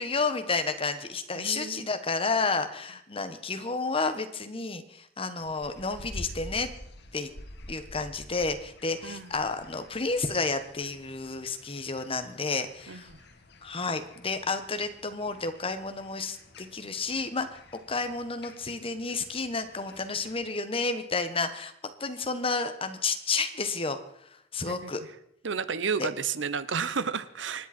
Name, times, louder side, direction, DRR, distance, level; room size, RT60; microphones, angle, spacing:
voice 1, 0.0-6.7 7.1-7.3 7.7-13.1 13.6-17.6 17.9-21.7 22.0-24.0 24.5-25.0 26.0-26.1, left 4 dB, 30° left, 9 dB, 1.3 m, -31 dB
voice 2, 1.4-1.9 9.0-9.3 12.9-13.2 24.7-24.9 25.4-27.7, right 5 dB, 75° right, 15 dB, 0.8 m, -32 dB
sound 1, 5.4-20.5, left 1 dB, 60° left, 1.6 m, -49 dB
25.5 x 10.5 x 4.4 m, 0.75 s
head